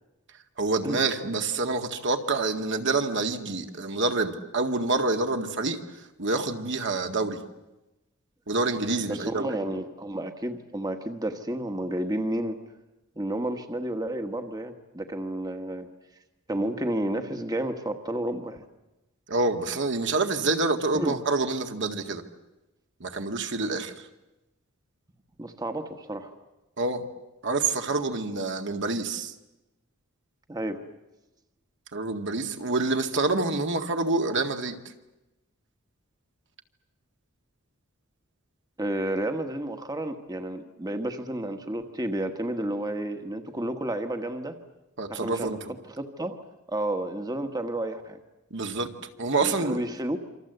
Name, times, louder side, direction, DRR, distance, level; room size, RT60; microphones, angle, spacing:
voice 1, 0.6-7.4 8.5-9.5 19.3-22.2 23.0-24.1 26.8-27.0 27.4-29.3 31.9-34.8 45.0-45.6 48.5-48.9 49.2-49.8, right 3 dB, 60° right, 5 dB, 2.0 m, -27 dB
voice 2, 9.1-12.6 13.2-15.9 16.5-18.6 20.9-21.2 25.4-26.3 30.5-30.8 38.8-44.6 45.1-45.6 46.0-46.4 46.7-48.2 49.4-50.2, right 1 dB, 20° right, 6 dB, 1.4 m, -31 dB
27.5 x 26.0 x 8.0 m, 1.0 s
head